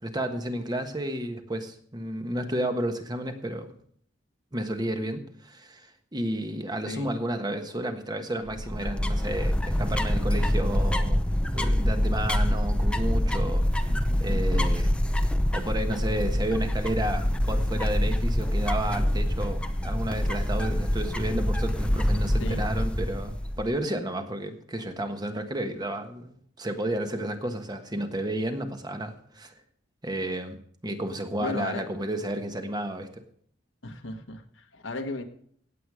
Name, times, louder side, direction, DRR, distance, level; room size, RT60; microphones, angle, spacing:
voice 1, 0.0-3.7 4.5-11.2 11.5-13.9 14.2-14.9 15.5-29.5 30.0-33.2, right 1 dB, 20° right, 6 dB, 1.4 m, -32 dB
voice 2, 6.9-7.2 13.9-14.7 15.5-15.7 22.4-22.7 31.4-31.9 33.8-35.2, left 2 dB, 80° left, 6 dB, 1.4 m, -36 dB
sound 1, 8.5-23.7, equal, 5° left, 0.7 m, -25 dB
17.0 x 8.2 x 4.9 m, 0.62 s
head